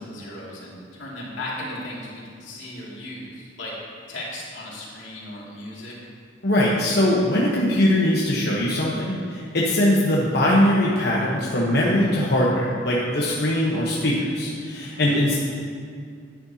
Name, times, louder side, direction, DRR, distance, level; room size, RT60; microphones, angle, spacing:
voice 1, 0.0-3.7 4.1-5.9 15.1-15.2, left 1 dB, 90° left, -5 dB, 2.6 m, -36 dB
voice 2, 6.4-15.4, left 1 dB, 60° left, -5 dB, 1.1 m, -21 dB
11.0 x 10.0 x 2.9 m, 2.2 s
head